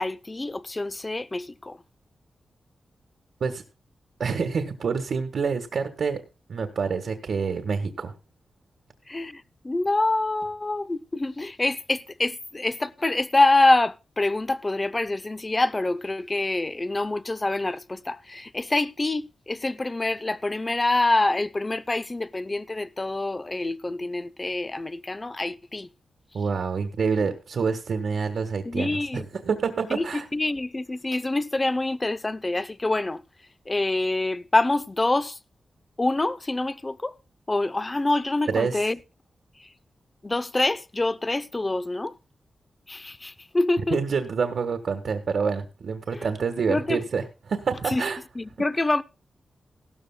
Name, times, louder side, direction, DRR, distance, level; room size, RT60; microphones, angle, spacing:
voice 1, 0.0-1.8 9.1-25.9 28.7-29.2 29.9-33.2 33.7-35.4 36.0-37.1 37.5-39.0 40.2-42.2 42.9-44.0 46.1-46.3 46.7-47.0 47.9-48.0 48.4-49.0, left 2 dB, 20° left, 0.6 m, -26 dB
voice 2, 4.2-6.2 6.5-8.1 26.3-30.2 38.5-38.8 43.9-48.2, right 5 dB, 70° right, 1.5 m, -27 dB
17.0 x 13.0 x 2.2 m
wide cardioid pair, 120°, 0 cm